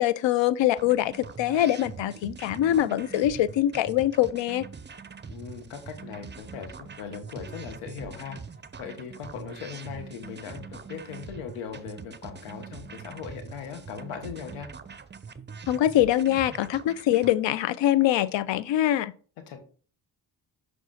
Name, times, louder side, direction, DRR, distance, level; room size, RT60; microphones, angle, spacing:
voice 1, 0.0-4.6 15.7-19.1, left 13 dB, 60° left, 0.6 m, -23 dB
sound 1, 0.8-17.3, right 5 dB, 20° right, 0.6 m, -43 dB
voice 2, 5.3-8.4 8.8-14.7 19.5-19.6, left 7 dB, 85° left, 1.1 m, -39 dB
6.1 x 3.4 x 5.5 m
supercardioid pair, 40°, 50 cm